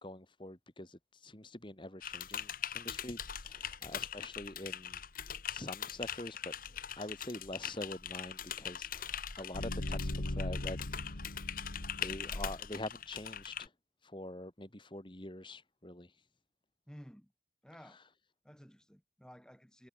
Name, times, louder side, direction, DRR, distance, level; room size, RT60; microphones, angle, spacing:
voice 1, 0.0-5.0 5.5-6.5 6.9-11.2 12.0-13.7 14.0-16.2 17.8-18.0, left 1 dB, 25° left, 2.1 m, -45 dB
Typing, 2.0-13.7, left 8 dB, 50° left, 1.8 m, -42 dB
sound 1, 9.5-12.7, left 1 dB, 75° left, 1.9 m, -39 dB
voice 2, 16.9-17.3 17.6-18.0 18.4-19.9, equal, 5° left, 7.6 m, -54 dB
head